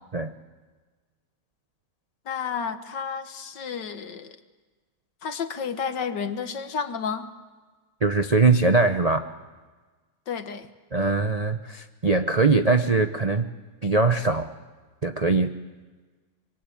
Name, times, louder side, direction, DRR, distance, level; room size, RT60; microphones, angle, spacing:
voice 1, 2.3-4.4 5.2-7.3 10.3-10.7, left 6 dB, 60° left, 9 dB, 1.9 m, -31 dB
voice 2, 8.0-9.3 10.9-13.5 13.8-14.5 15.0-15.6, right 3 dB, 45° right, 6 dB, 0.5 m, -21 dB
26.5 x 24.0 x 8.6 m, 1.4 s
omnidirectional pair, 2.2 m